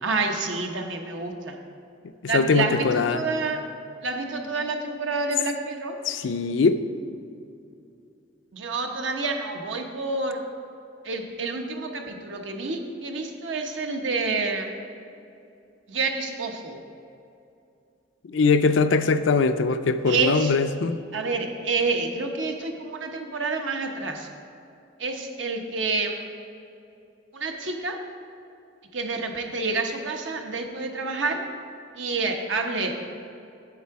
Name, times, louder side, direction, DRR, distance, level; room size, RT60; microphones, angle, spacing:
voice 1, 0.0-1.5 2.3-3.6 4.0-6.0 8.5-10.4 11.0-14.7 15.9-16.8 20.1-20.5 21.1-24.3 25.0-26.2 27.3-28.0 28.9-31.4 32.0-33.1, right 3 dB, 80° right, 4 dB, 0.9 m, -28 dB
voice 2, 2.2-3.2 6.0-6.8 18.3-21.0, left 4 dB, 80° left, 10 dB, 0.4 m, -21 dB
8.3 x 7.7 x 4.7 m, 2.6 s
head